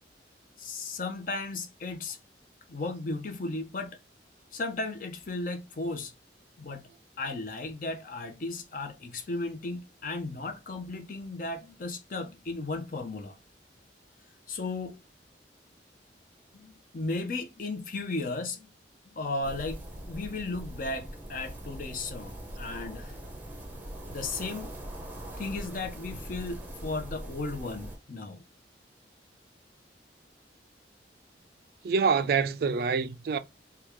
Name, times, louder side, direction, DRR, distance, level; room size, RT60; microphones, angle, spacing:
voice 1, 0.6-2.2 2.7-4.0 4.5-6.1 6.6-6.9 7.2-13.4 14.5-15.0 16.5-18.7 19.1-19.8 20.1-23.2 24.1-24.7 25.4-28.4, left 3 dB, 50° left, 0.6 m, -35 dB
sound 1, 19.4-28.0, right 1 dB, 10° right, 0.7 m, -42 dB
voice 2, 31.8-33.4, right 5 dB, 55° right, 0.3 m, -26 dB
3.5 x 2.2 x 3.0 m
head